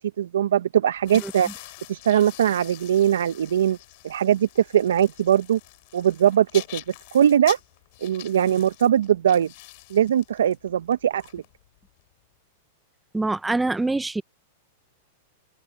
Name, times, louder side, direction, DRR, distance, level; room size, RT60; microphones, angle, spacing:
voice 1, 0.0-1.5 1.9-3.8 4.0-5.6 5.9-6.8 7.1-7.6 8.0-9.5 9.9-11.4, right 10 dB, 80° right, 1.0 m, -21 dB
sound 1, 1.0-12.0, left 25 dB, 55° left, 6.4 m, -44 dB
voice 2, 13.1-14.2, right 2 dB, 10° right, 0.7 m, -25 dB
hypercardioid pair, 110°, 0 cm